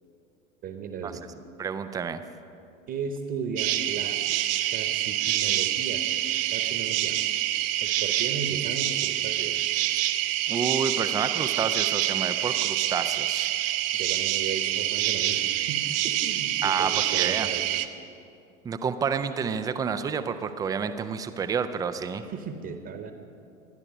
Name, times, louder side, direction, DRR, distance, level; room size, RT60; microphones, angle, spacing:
voice 1, 0.6-1.2 2.9-4.2 4.7-7.2 7.8-9.6 13.9-17.7 22.3-23.1, right 5 dB, 30° right, 6 dB, 1.2 m, -36 dB
voice 2, 1.6-2.2 10.5-13.5 16.6-17.5 18.6-22.3, right 6 dB, 10° right, 11 dB, 0.5 m, -29 dB
sound 1, 3.6-17.9, right 14 dB, 45° right, 0.8 m, -26 dB
25.0 x 11.0 x 5.3 m, 2.6 s
figure-of-eight pair, 90°, 41 cm